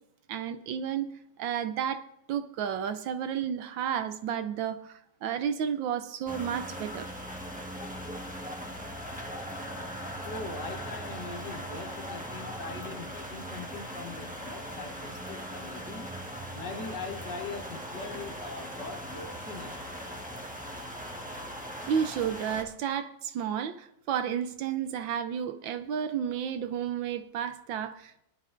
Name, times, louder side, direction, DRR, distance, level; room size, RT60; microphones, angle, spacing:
voice 1, 0.3-2.0 2.3-7.1 21.8-28.2, right 8 dB, 75° right, 1.3 m, -32 dB
sound 1, 6.3-22.6, equal, 5° right, 1.0 m, -39 dB
voice 2, 10.2-16.1 16.5-19.8, left 3 dB, 60° left, 1.9 m, -41 dB
25.0 x 10.5 x 2.6 m
omnidirectional pair, 2.2 m